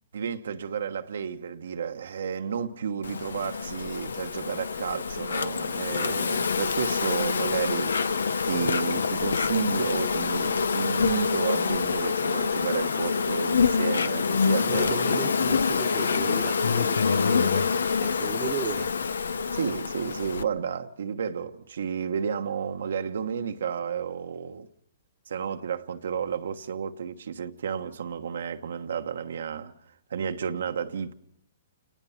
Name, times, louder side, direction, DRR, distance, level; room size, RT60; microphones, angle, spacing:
voice 1, 0.1-7.9 8.4-15.0 19.5-24.7 25.3-29.7 30.1-31.1, right 7 dB, 75° right, 1.3 m, -32 dB
Insect, 3.0-20.4, left 5 dB, 90° left, 0.9 m, -26 dB
voice 2, 6.0-6.5 14.6-19.0, right 7 dB, 15° right, 1.2 m, -37 dB
28.5 x 19.5 x 5.8 m
hypercardioid pair, 145°, 0 cm